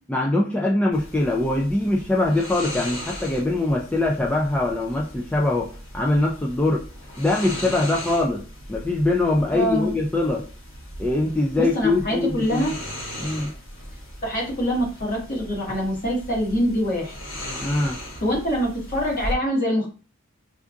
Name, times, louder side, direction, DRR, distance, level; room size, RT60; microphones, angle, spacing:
voice 1, 0.1-6.8 7.2-8.4 8.7-10.4 11.0-12.8 13.2-13.5 17.6-18.0, left 2 dB, 5° left, -2 dB, 0.3 m, -23 dB
sound 1, 0.9-19.3, equal, 70° left, 1.6 m, -37 dB
voice 2, 9.5-9.9 11.6-12.7 14.2-17.1 18.2-19.9, equal, 45° left, -3 dB, 1.6 m, -24 dB
3.5 x 2.5 x 3.5 m, 0.37 s
head